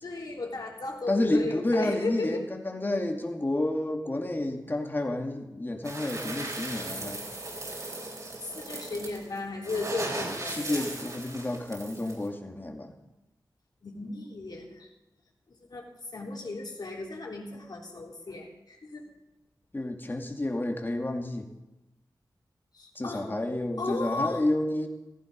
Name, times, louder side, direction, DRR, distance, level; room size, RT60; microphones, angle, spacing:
voice 1, 0.0-2.4 8.4-10.9 12.8-12.9 13.8-14.9 15.7-15.8 16.1-19.0 22.7-23.2 23.8-24.4, left 3 dB, 65° left, -1 dB, 3.4 m, -35 dB
voice 2, 1.1-7.2 10.5-12.9 19.7-21.5 23.0-24.9, left 1 dB, 25° left, 3 dB, 2.3 m, -30 dB
sound 1, 5.8-12.3, right 2 dB, 45° right, 3.8 m, -37 dB
15.0 x 15.0 x 5.3 m, 0.97 s
wide cardioid pair, 70°, 8 cm